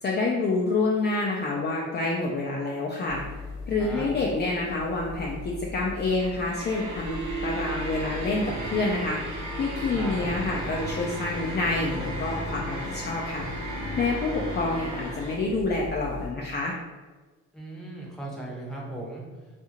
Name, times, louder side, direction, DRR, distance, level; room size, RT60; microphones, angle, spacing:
voice 1, 0.0-3.2 3.7-16.7, left 3 dB, 35° left, -2 dB, 0.4 m, -28 dB
sound 1, 3.1-16.3, equal, 70° right, 0.9 m, -35 dB
voice 2, 9.9-10.3 17.5-19.2, right 1 dB, ahead, -3 dB, 0.8 m, -37 dB
2.6 x 2.5 x 2.8 m, 1.3 s
cardioid pair, 90°, 30 cm